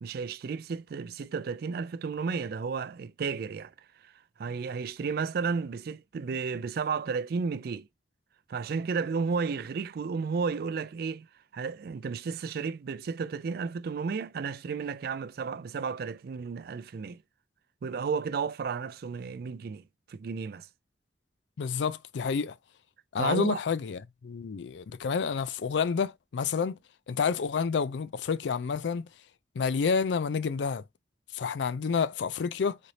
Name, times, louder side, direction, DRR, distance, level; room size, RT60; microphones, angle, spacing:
voice 1, 0.0-3.7 4.0-4.1 4.4-7.9 8.5-11.3 11.5-17.2 17.8-20.7 23.2-23.6, right 5 dB, 60° right, 0.4 m, -33 dB
voice 2, 21.6-22.6 23.1-26.8 27.1-29.1 29.6-30.8 31.3-32.8, left 5 dB, 80° left, 0.4 m, -29 dB
4.1 x 3.3 x 3.9 m
head